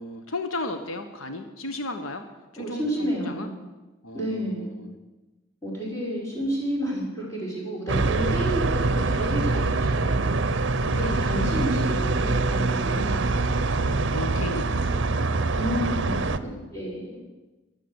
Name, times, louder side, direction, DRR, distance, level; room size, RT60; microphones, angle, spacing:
voice 1, 0.0-2.2 2.5-3.5 4.0-5.0 8.5-9.0 11.0-11.8 13.2-16.7, left 2 dB, 85° left, 7 dB, 1.3 m, -36 dB
voice 2, 2.6-3.5 4.1-4.7 5.6-10.6 10.9-13.2 15.5-16.2 16.7-17.2, equal, 15° left, -4 dB, 5.4 m, -30 dB
sound 1, 7.9-16.4, right 3 dB, 60° right, 0.8 m, -24 dB
13.5 x 12.0 x 8.0 m, 1.1 s
head